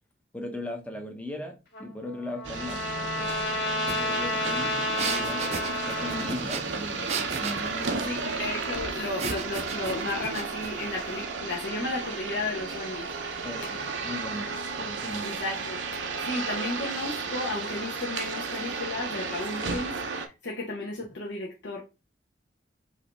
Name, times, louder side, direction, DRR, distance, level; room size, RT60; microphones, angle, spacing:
voice 1, 0.3-3.4 3.9-5.5 5.8-8.2 13.4-15.4, left 1 dB, 5° left, 0.7 m, -38 dB
Trumpet, 1.7-6.4, left 1 dB, 50° left, 2.0 m, -31 dB
sound 1, 2.4-20.3, right 4 dB, 80° right, 0.6 m, -33 dB
sound 2, 3.9-4.0 4.3-8.0 9.2-10.7, right 5 dB, 35° right, 0.4 m, -35 dB
voice 2, 8.0-13.1 15.2-15.8 16.2-21.8, left 2 dB, 70° left, 0.9 m, -34 dB
5.0 x 2.7 x 3.2 m
head